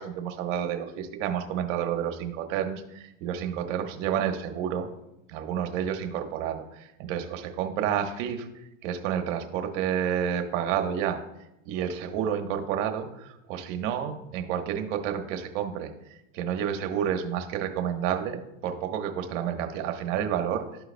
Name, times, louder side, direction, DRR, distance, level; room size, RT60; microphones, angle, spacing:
voice 1, 0.0-4.9 5.3-8.5 8.8-11.2 11.7-20.6, right 9 dB, 70° right, 5 dB, 1.2 m, -30 dB
12.5 x 4.6 x 2.3 m, 0.88 s
supercardioid pair, 110°, 39 cm